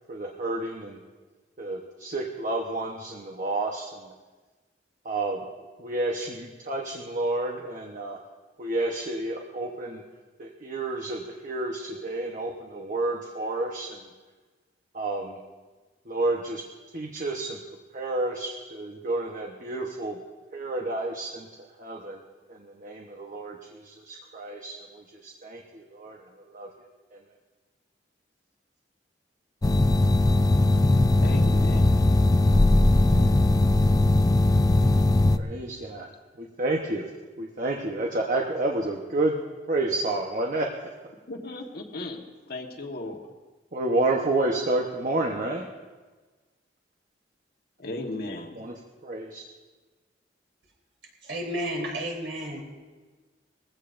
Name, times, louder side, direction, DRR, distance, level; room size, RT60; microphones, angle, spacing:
voice 1, 0.1-1.0 1.6-4.1 5.0-5.4 5.8-8.2 8.6-10.0 10.4-14.0 14.9-15.4 16.1-16.6 16.9-17.6 17.9-20.2 20.5-21.5 21.8-22.2 22.5-26.2 26.5-26.7 33.1-33.4 35.4-36.1 36.6-37.1 37.4-39.4 39.7-40.7 43.7-45.7 48.6-48.7 49.0-49.4, right 2 dB, 45° right, 0 dB, 1.1 m, -30 dB
sound 1, 29.6-35.4, left 2 dB, 20° left, 0.4 m, -19 dB
voice 2, 31.2-31.9 41.3-43.2 47.8-48.7, left 2 dB, 60° left, 3 dB, 1.4 m, -36 dB
voice 3, 51.2-52.6, right 1 dB, 70° right, -2 dB, 3.6 m, -32 dB
20.5 x 15.5 x 2.6 m, 1.3 s
head